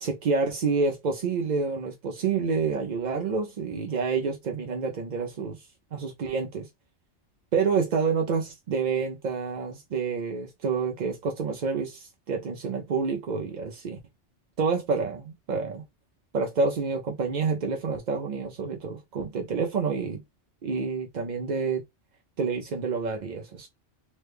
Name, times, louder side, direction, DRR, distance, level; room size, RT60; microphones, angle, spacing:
voice 1, 0.0-6.7 7.5-14.0 14.6-15.8 16.3-20.2 20.6-21.8 22.4-23.7, right 5 dB, 50° right, 0.5 m, -28 dB
3.1 x 2.2 x 3.3 m
omnidirectional pair, 1.2 m